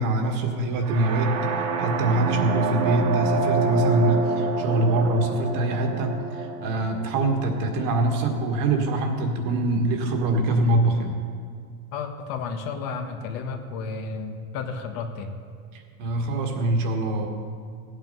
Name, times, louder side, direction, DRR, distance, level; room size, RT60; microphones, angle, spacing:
voice 1, 0.0-1.4 1.8-11.2 15.7-17.3, right 2 dB, 45° right, 3 dB, 1.8 m, -24 dB
sound 1, 0.8-8.7, right 4 dB, 60° right, 1.8 m, -28 dB
voice 2, 11.9-15.3, left 5 dB, 50° left, 5 dB, 1.4 m, -32 dB
16.0 x 8.8 x 5.6 m, 2.2 s
supercardioid pair, 145°, 44 cm